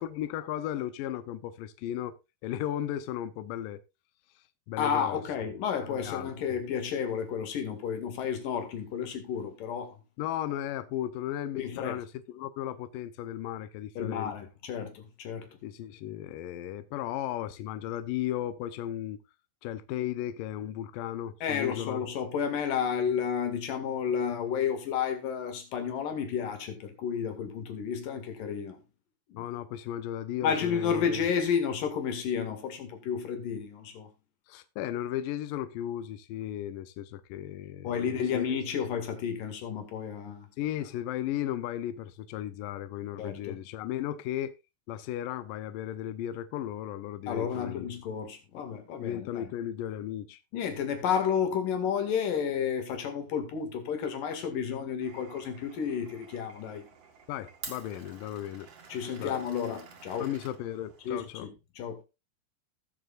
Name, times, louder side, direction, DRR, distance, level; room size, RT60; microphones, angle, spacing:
voice 1, 0.0-2.2 2.4-3.8 4.7-5.2 5.9-6.6 10.2-14.3 15.6-19.2 19.6-22.0 29.4-31.1 34.5-38.5 40.6-44.5 44.9-47.9 49.0-50.4 57.3-58.7 59.2-59.4 60.2-61.5, left 12 dB, 85° left, 2.0 m, -35 dB
voice 2, 4.8-10.0 11.5-12.0 14.0-15.5 21.4-28.8 29.3-29.4 30.4-34.1 37.8-40.5 43.2-43.7 47.3-49.5 50.5-56.8 58.9-60.3 61.0-62.0, left 7 dB, 60° left, 3.4 m, -31 dB
Glass, 55.0-61.3, right 5 dB, 45° right, 2.5 m, -49 dB
19.5 x 6.6 x 2.4 m
omnidirectional pair, 4.7 m